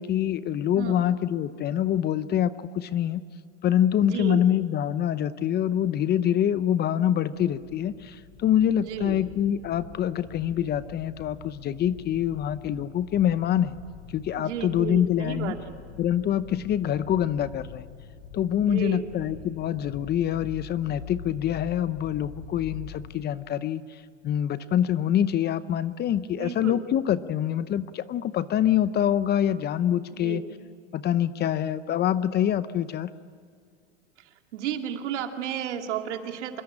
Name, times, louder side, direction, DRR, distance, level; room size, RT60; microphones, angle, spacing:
voice 1, 0.0-3.2 3.6-13.8 14.1-15.5 16.0-17.9 18.3-30.4 30.9-33.1, left 10 dB, 30° left, 15 dB, 0.7 m, -25 dB
voice 2, 0.7-1.2 4.0-4.4 8.8-9.2 14.3-15.8 18.6-19.1 26.3-26.8 30.1-30.5 34.2-36.6, right 9 dB, 75° right, 4 dB, 2.7 m, -33 dB
sound 1, 7.3-23.1, left 7 dB, 60° left, 6.5 m, -45 dB
26.0 x 21.5 x 8.8 m, 2.1 s
hypercardioid pair, 120°, 35 cm